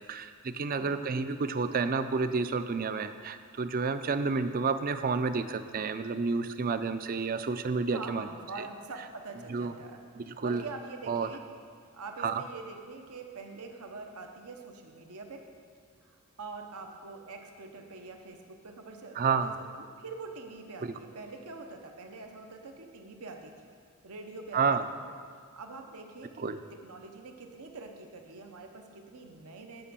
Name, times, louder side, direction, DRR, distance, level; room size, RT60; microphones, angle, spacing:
voice 1, 0.1-8.3 9.5-9.7 10.2-10.6 11.1-11.3 12.2-12.4 19.2-19.5 20.8-20.9 24.5-24.8 26.4-26.6, right 4 dB, 40° right, 11 dB, 0.4 m, -30 dB
voice 2, 0.8-1.1 7.9-11.4 11.9-15.4 16.0-23.5 24.0-24.6 25.3-26.4 26.7-29.9, right 3 dB, 85° right, 4 dB, 1.0 m, -45 dB
10.0 x 6.0 x 6.9 m, 2.1 s
head